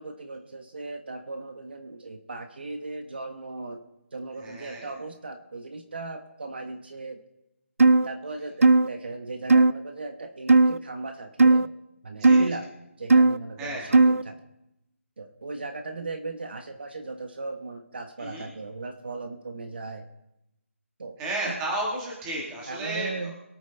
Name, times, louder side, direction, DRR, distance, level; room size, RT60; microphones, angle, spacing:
voice 1, 0.0-3.8 4.1-7.2 8.0-11.7 12.0-12.7 13.0-14.4 15.2-20.1 21.0-21.2 21.4-21.6 22.7-23.3, right 3 dB, 45° right, 6 dB, 1.2 m, -37 dB
voice 2, 4.4-4.9 12.2-12.4 13.6-14.0 18.2-18.5 21.2-23.1, right 1 dB, 5° right, -3 dB, 1.5 m, -32 dB
sound 1, 7.8-8.1 8.6-8.9 9.5-9.7 10.5-10.8 11.4-11.7 12.2-12.5 13.1-13.4 13.9-14.2, right 3 dB, 75° right, 0.5 m, -16 dB
23.5 x 9.2 x 3.4 m, 0.89 s
figure-of-eight pair, 175°, 8 cm